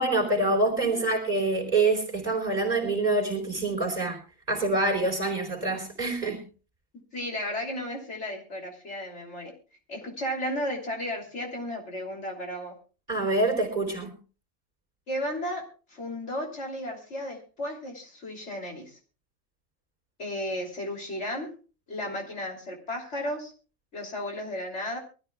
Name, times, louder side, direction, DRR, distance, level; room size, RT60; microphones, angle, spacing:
voice 1, 0.0-4.2 4.5-6.4 13.1-14.1, right 2 dB, 30° right, -2 dB, 4.2 m, -26 dB
voice 2, 7.1-9.5 9.9-12.7 15.1-19.0 20.2-21.5 21.9-23.5 23.9-25.0, left 1 dB, 55° left, 0 dB, 3.4 m, -34 dB
23.5 x 13.5 x 2.4 m, 0.35 s
omnidirectional pair, 1.4 m